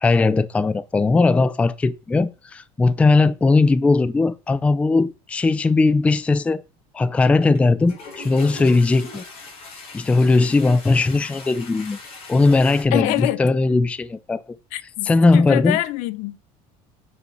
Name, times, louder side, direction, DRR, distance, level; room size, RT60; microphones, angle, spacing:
voice 1, 0.0-6.6 6.9-9.2 9.9-12.0 12.3-14.4 15.0-15.8, left 3 dB, 10° left, 0.4 m, -18 dB
Toilet flush, 7.4-7.6 7.8-12.8, left 3 dB, 45° left, 5.4 m, -40 dB
voice 2, 12.9-13.4 14.7-16.4, left 15 dB, 65° left, 0.8 m, -24 dB
9.5 x 5.0 x 5.6 m
cardioid pair, 150°, 14 cm